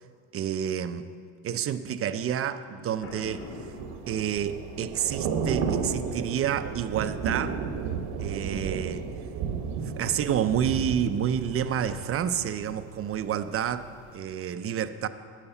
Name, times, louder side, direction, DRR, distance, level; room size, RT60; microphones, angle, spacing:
voice 1, 0.3-1.0 1.4-3.5 4.1-7.6 8.2-9.1 10.0-15.1, right 9 dB, 35° right, 11 dB, 0.5 m, -29 dB
Boom, 3.0-4.9, left 3 dB, 30° left, 1.4 m, -43 dB
Thunder / Rain, 3.3-13.3 13.6-13.9, right 6 dB, 70° right, 1.1 m, -33 dB
9.7 x 7.1 x 6.9 m, 2.2 s
supercardioid pair, 100°, 43 cm